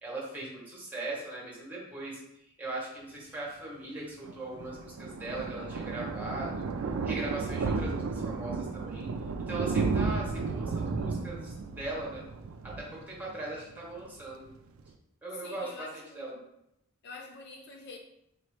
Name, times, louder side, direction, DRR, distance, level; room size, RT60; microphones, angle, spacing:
voice 1, 0.0-6.7 7.0-9.1 9.5-12.2 12.6-14.5 15.2-16.4, right 2 dB, 10° right, -5 dB, 1.3 m, -39 dB
Thunder, 4.2-13.6 14.0-14.2 14.5-14.6 14.8-14.9, right 4 dB, 70° right, 0.4 m, -33 dB
voice 2, 15.3-16.5 17.0-18.0, left 3 dB, 50° left, 3 dB, 0.4 m, -46 dB
4.5 x 2.9 x 3.2 m, 0.79 s
head